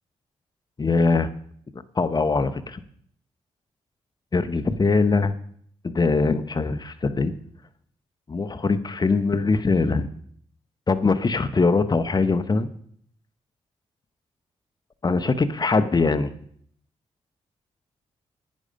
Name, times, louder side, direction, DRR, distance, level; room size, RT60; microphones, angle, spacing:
voice 1, 0.8-1.3 2.0-2.8 4.3-5.4 5.8-7.3 8.3-10.1 10.9-12.7 15.0-16.3, left 4 dB, 35° left, 12 dB, 1.0 m, -22 dB
11.0 x 9.8 x 5.3 m, 0.64 s
cardioid pair, 60°, 12 cm